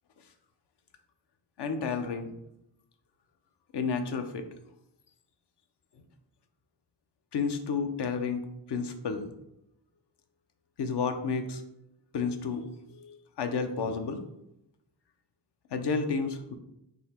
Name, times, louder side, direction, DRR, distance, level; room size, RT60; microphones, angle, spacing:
voice 1, 1.6-2.3 3.7-4.5 7.3-8.4 8.7-9.3 10.8-11.6 12.1-14.2 15.7-16.5, left 5 dB, 60° left, 7 dB, 0.7 m, -31 dB
4.0 x 2.8 x 4.3 m, 0.84 s
cardioid pair, 80°, 47 cm